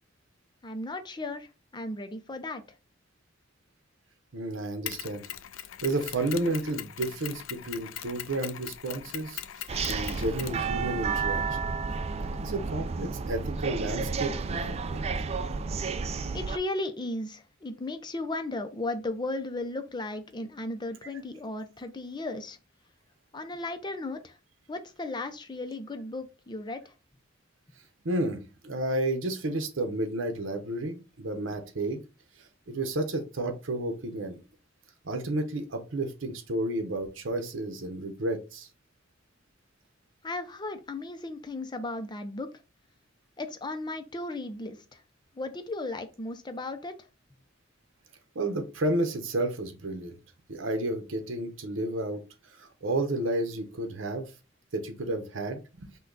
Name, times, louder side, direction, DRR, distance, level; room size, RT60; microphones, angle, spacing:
voice 1, 0.6-2.6 16.3-22.6 23.3-24.4 24.7-26.9 40.2-42.5 43.4-45.0 45.4-46.9, left 2 dB, 20° left, 8 dB, 0.6 m, -35 dB
voice 2, 4.3-5.2 5.8-11.6 12.4-15.0 28.0-32.0 32.7-34.4 35.0-38.7 48.3-50.2 50.5-52.2 52.6-54.3 54.7-56.0, right 2 dB, 75° right, 6 dB, 0.9 m, -31 dB
Mechanisms, 4.9-11.2, left 11 dB, 90° left, 0.4 m, -41 dB
sound 1, 9.7-16.6, right 4 dB, 30° right, 0.3 m, -31 dB
5.5 x 2.3 x 3.9 m, 0.31 s
head